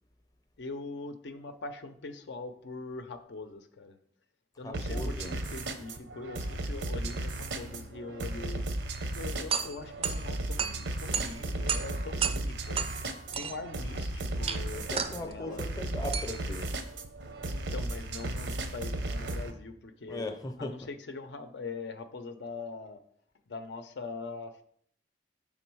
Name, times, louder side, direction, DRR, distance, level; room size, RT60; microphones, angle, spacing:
voice 1, 0.6-4.0 4.6-8.6 9.1-12.8 13.3-15.6 17.5-20.2 20.6-23.0 23.5-24.6, left 3 dB, 75° left, 0.5 m, -42 dB
voice 2, 4.6-5.4 14.7-16.7 20.1-20.8, left 2 dB, 20° left, 0.5 m, -38 dB
sound 1, 4.7-19.5, right 1 dB, 80° right, 0.7 m, -35 dB
sound 2, 9.5-18.2, right 7 dB, 35° right, 0.4 m, -36 dB
6.0 x 3.7 x 4.5 m
head